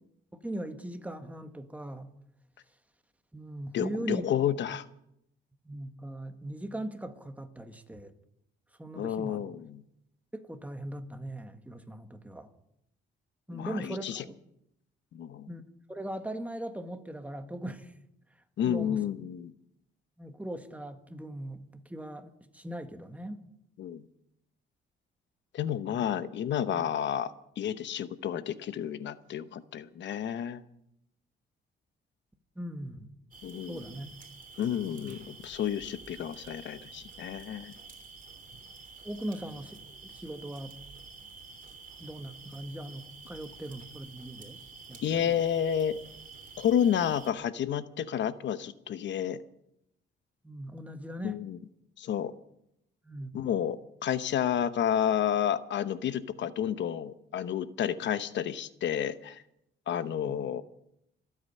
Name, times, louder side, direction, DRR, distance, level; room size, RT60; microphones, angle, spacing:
voice 1, 0.4-2.1 3.3-4.3 5.6-8.1 8.8-9.4 10.3-12.5 13.5-14.4 15.5-15.6 15.9-17.9 18.6-19.0 20.2-23.4 32.6-33.1 33.7-34.1 34.9-35.2 39.0-40.8 42.0-44.6 44.9-45.3 50.4-51.4 53.0-53.3, right 1 dB, 5° right, 7 dB, 1.6 m, -39 dB
voice 2, 3.7-4.8 8.9-9.8 13.5-14.2 15.1-15.5 18.6-19.5 23.8-24.1 25.5-30.6 33.4-33.8 34.6-37.7 45.0-46.0 46.6-49.4 51.2-51.6 52.0-52.3 53.3-59.4 59.9-60.6, left 9 dB, 65° left, 13 dB, 0.9 m, -30 dB
sound 1, 33.3-47.3, right 4 dB, 45° right, 3.0 m, -49 dB
25.5 x 8.8 x 5.5 m, 0.77 s
cardioid pair, 90°, 20 cm